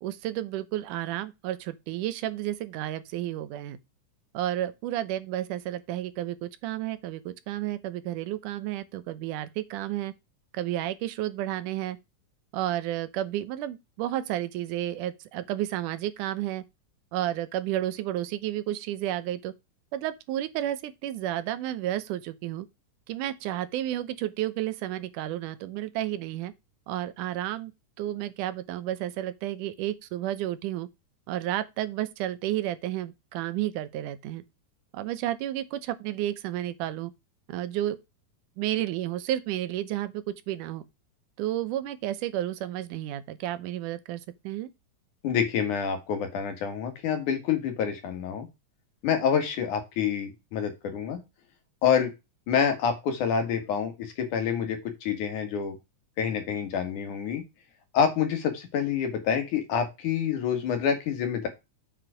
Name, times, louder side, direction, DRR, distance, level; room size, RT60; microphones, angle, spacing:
voice 1, 0.0-3.8 4.3-10.1 10.5-12.0 12.5-16.6 17.1-19.5 19.9-22.7 23.1-26.5 26.9-27.7 28.0-30.9 31.3-34.4 34.9-37.1 37.5-38.0 38.6-40.8 41.4-44.7, right 13 dB, 85° right, 2.3 m, -31 dB
voice 2, 45.2-48.5 49.0-51.2 51.8-52.1 52.5-55.8 56.2-57.4 57.9-61.5, left 7 dB, 75° left, 3.3 m, -27 dB
7.7 x 4.9 x 5.0 m
omnidirectional pair, 3.5 m